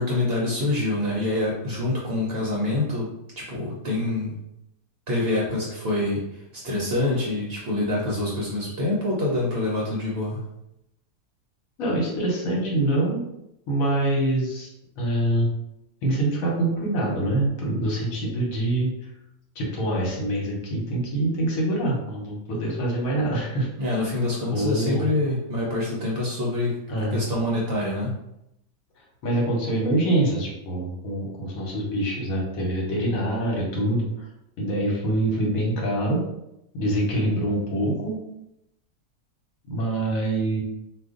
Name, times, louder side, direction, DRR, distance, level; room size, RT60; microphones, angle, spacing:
voice 1, 0.0-4.4 5.1-10.4 23.8-28.1, left 2 dB, 55° right, -4 dB, 0.7 m, -26 dB
voice 2, 11.8-13.2 13.7-15.5 16.0-18.9 19.5-23.7 24.5-25.1 26.9-27.2 29.2-34.3 34.6-36.2 36.7-38.2 39.7-40.6, right 1 dB, 75° left, -3 dB, 1.3 m, -25 dB
2.5 x 2.4 x 3.7 m, 0.84 s
omnidirectional pair, 1.5 m